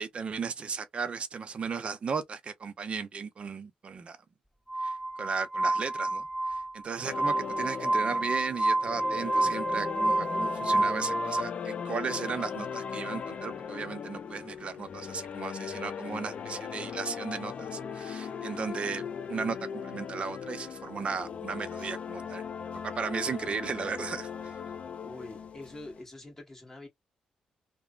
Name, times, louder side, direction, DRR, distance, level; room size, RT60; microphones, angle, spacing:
voice 1, 0.0-4.2 4.8-22.4 22.8-24.5, right 5 dB, 50° right, 0.6 m, -36 dB
Glass, 4.7-11.4, right 2 dB, ahead, 0.4 m, -29 dB
sound 1, 7.0-26.0, left 7 dB, 55° left, 0.5 m, -38 dB
voice 2, 25.0-26.9, left 2 dB, 15° left, 1.6 m, -45 dB
3.0 x 2.1 x 2.4 m
cardioid pair, 80°, 3 cm